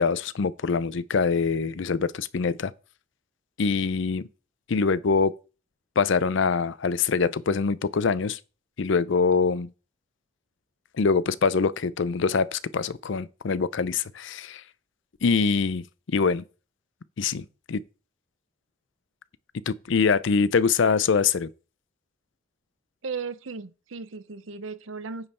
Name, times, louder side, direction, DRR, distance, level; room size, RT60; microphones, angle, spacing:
voice 1, 0.0-2.7 3.6-4.3 4.7-5.3 6.0-8.4 8.8-9.7 11.0-14.6 15.2-16.4 17.2-17.8 19.7-21.5, left 5 dB, 60° left, 0.5 m, -24 dB
voice 2, 23.0-25.3, right 4 dB, 70° right, 0.7 m, -36 dB
9.5 x 5.4 x 4.3 m
head